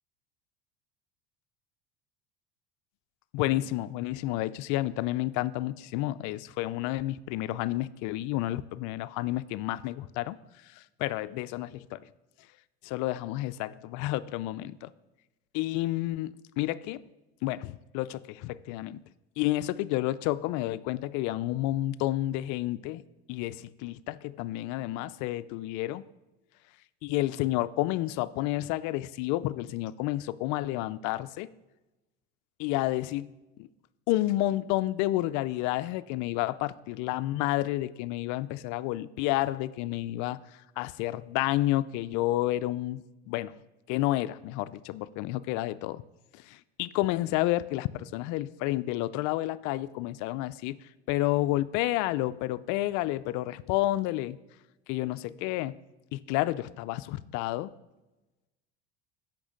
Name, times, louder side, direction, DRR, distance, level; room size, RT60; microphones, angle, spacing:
voice 1, 3.3-10.4 10.7-12.1 12.8-14.9 15.5-16.3 16.6-17.0 17.4-19.0 19.4-23.0 23.3-26.1 27.0-31.5 32.6-33.3 33.6-33.7 34.1-40.4 40.8-43.6 43.9-46.0 46.3-50.8 51.1-54.4 54.9-55.8 56.1-57.7, left 16 dB, 60° left, 16 dB, 0.4 m, -30 dB
8.5 x 5.9 x 5.1 m, 1.1 s
supercardioid pair, 95°, 34 cm